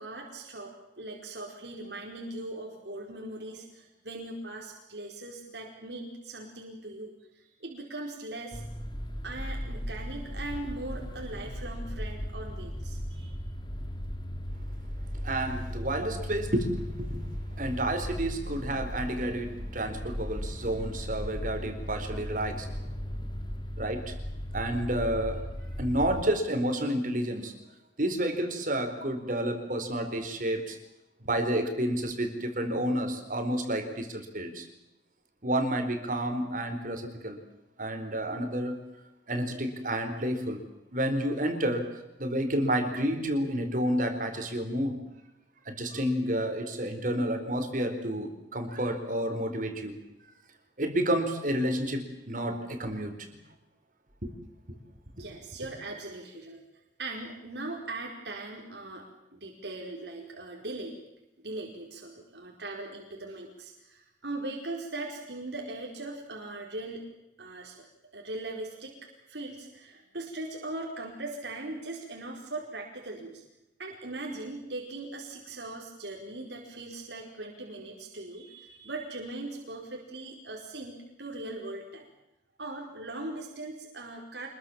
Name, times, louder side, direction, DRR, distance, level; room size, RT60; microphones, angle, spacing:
voice 1, 0.0-8.6 9.2-13.3 55.2-56.6 57.0-59.1 59.3-61.0 61.4-67.1 67.4-73.4 73.8-82.1 82.6-84.5, right 2 dB, 75° right, 0 dB, 4.8 m, -40 dB
sound 1, 8.5-26.2, equal, 25° left, 2.2 m, -37 dB
voice 2, 15.2-17.2 17.6-22.7 23.8-24.1 24.5-25.4 25.8-27.5 28.0-30.8 31.2-34.7 35.4-37.4 37.8-38.8 39.3-40.6 40.9-41.9 42.2-45.0 45.6-50.0 50.8-53.3 54.2-54.3 54.7-54.8 55.2-55.3, right 1 dB, 50° right, 6 dB, 4.5 m, -30 dB
26.5 x 22.0 x 7.4 m, 0.92 s
head